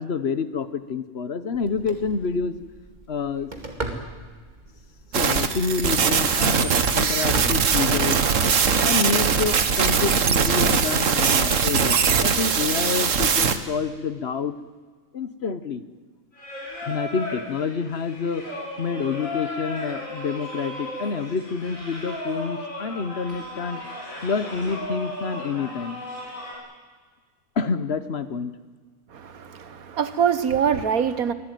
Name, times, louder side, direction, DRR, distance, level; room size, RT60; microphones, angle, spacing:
voice 1, 0.0-2.5 3.1-3.5 5.1-8.2 8.8-14.5 15.1-15.8 16.8-18.5 18.8-23.8 24.2-26.0 27.6-28.5, left 5 dB, 50° left, 13 dB, 1.2 m, -28 dB
Telephone, 1.5-8.5, right 2 dB, 30° right, 2.4 m, -38 dB
sound 1, 5.1-13.6, right 6 dB, 65° right, 1.6 m, -21 dB
Singing, 16.3-26.5, left 1 dB, 70° left, 5.6 m, -35 dB
voice 2, 29.1-31.3, right 7 dB, 90° right, 12 dB, 1.7 m, -24 dB
23.5 x 16.0 x 9.3 m, 1.5 s
omnidirectional pair, 1.5 m